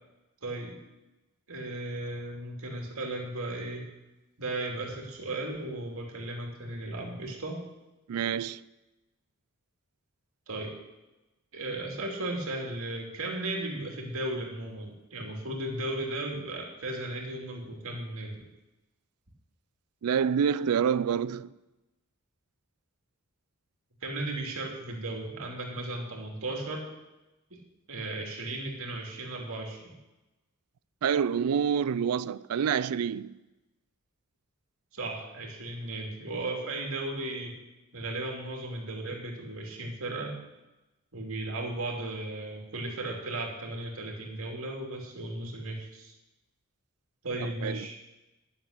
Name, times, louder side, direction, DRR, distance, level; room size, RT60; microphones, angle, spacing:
voice 1, 0.4-0.8 1.5-3.9 4.4-7.6 10.5-10.7 11.5-18.4 24.0-26.9 27.9-29.8 34.9-37.6 37.9-40.4 41.1-46.1 47.2-48.0, right 2 dB, 65° right, 2.7 m, -35 dB
voice 2, 8.1-8.6 20.0-21.5 31.0-33.4 47.4-47.9, right 7 dB, 85° right, 0.4 m, -27 dB
11.5 x 7.2 x 6.6 m
head